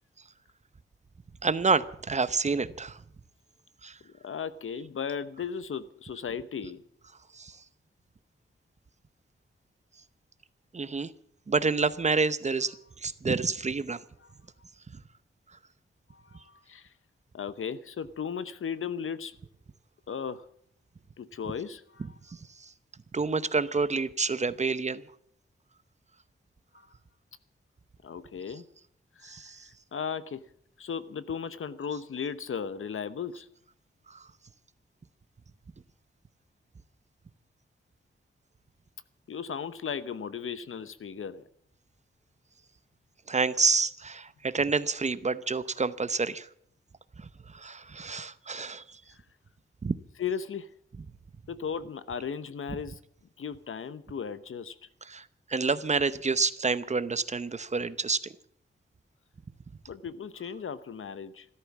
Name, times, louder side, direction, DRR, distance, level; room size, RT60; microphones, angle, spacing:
voice 1, 1.4-3.0 3.8-4.0 7.4-7.5 10.7-11.1 11.5-12.7 13.0-14.0 23.1-25.0 29.2-29.6 43.3-46.5 47.5-48.8 49.8-50.0 55.1-55.2 55.5-58.2, right 4 dB, 35° right, 14 dB, 0.8 m, -28 dB
voice 2, 4.0-6.8 14.2-14.3 16.1-16.9 17.3-19.3 20.1-20.4 21.2-22.2 26.7-26.9 28.0-28.6 29.2-29.5 29.9-30.4 30.8-33.5 39.3-41.5 49.1-49.2 50.2-50.7 51.5-53.0 53.4-54.7 59.9-61.5, left 7 dB, 75° left, 14 dB, 1.0 m, -36 dB
14.5 x 13.0 x 7.3 m, 0.66 s
wide cardioid pair, 125°, 21 cm